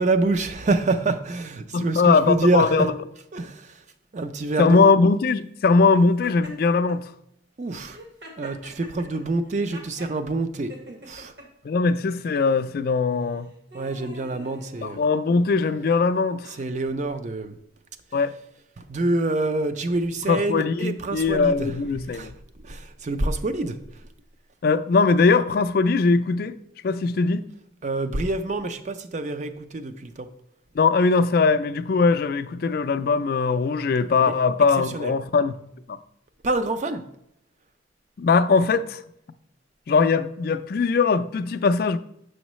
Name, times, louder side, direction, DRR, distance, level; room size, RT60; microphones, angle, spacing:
voice 1, 0.0-2.9 3.3-3.8 4.1-4.8 7.6-8.0 8.4-11.3 13.7-15.0 16.6-17.5 18.8-21.7 22.1-22.3 22.6-23.8 27.8-30.3 34.2-34.3 34.9-35.1 36.4-37.0, right 2 dB, 40° right, 0.4 m, -26 dB
voice 2, 1.7-2.9 4.6-7.1 11.6-13.5 14.8-16.5 18.1-18.3 20.3-22.3 24.6-26.5 26.8-27.5 30.8-35.5 35.9-36.0 38.2-39.0 39.9-42.0, left 4 dB, 50° left, 0.3 m, -20 dB
Laughter, 6.2-7.0 7.8-10.2 10.7-11.5 12.2-12.5 13.2-15.4, equal, 60° right, 1.5 m, -45 dB
7.0 x 6.3 x 3.0 m
head